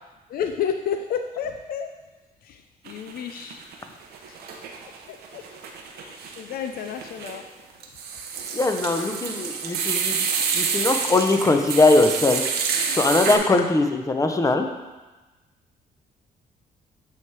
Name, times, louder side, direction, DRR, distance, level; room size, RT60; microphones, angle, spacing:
voice 1, 0.3-1.9 2.4-3.6 4.3-4.4 5.1-5.5 6.0-7.5 10.5-10.7 13.6-13.7, left 8 dB, 65° left, 6 dB, 0.4 m, -31 dB
sound 1, 2.8-3.8 4.1-13.4, right 6 dB, 80° right, 0.8 m, -28 dB
voice 2, 8.5-10.2 10.5-12.4 12.9-14.7, left 2 dB, 20° left, 6 dB, 0.7 m, -20 dB
8.3 x 3.2 x 4.7 m, 1.2 s
cardioid pair, 85°, 16 cm